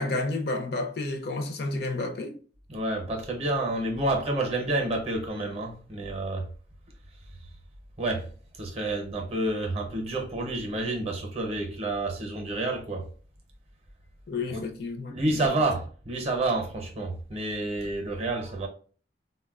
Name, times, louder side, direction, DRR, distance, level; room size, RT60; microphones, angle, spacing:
voice 1, 0.0-2.3 14.3-15.2, left 2 dB, 60° left, 0.5 m, -30 dB
voice 2, 2.7-6.5 8.0-8.3 8.6-13.1 14.5-14.7 15.1-18.7, right 2 dB, 35° right, 0.6 m, -29 dB
3.7 x 2.1 x 2.3 m
head